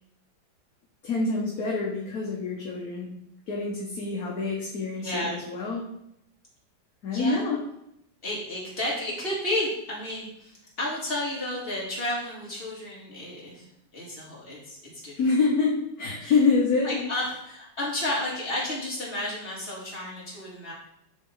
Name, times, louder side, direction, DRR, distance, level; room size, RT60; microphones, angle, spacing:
voice 1, 1.0-3.1 3.5-5.8 7.0-7.6 15.2-17.1, left 4 dB, 55° left, -3 dB, 1.4 m, -26 dB
voice 2, 5.0-5.4 7.1-7.4 8.2-13.6 13.9-15.2 16.2-16.3 16.8-20.7, left 1 dB, 30° left, -6 dB, 2.4 m, -32 dB
9.9 x 3.6 x 3.8 m, 0.80 s
omnidirectional pair, 2.0 m